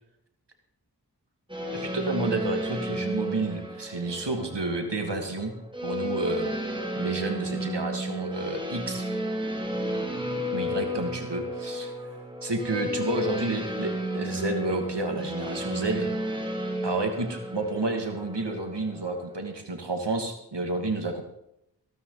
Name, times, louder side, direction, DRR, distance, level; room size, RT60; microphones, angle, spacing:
sound 1, 1.5-19.6, equal, 10° right, 2.7 m, -32 dB
voice 1, 1.7-5.6 5.8-6.5 7.0-9.0 10.5-11.9 12.4-16.1 16.8-21.2, right 2 dB, 80° right, 4 dB, 2.4 m, -30 dB
16.5 x 12.5 x 4.1 m, 0.80 s
wide cardioid pair, 45°, 41 cm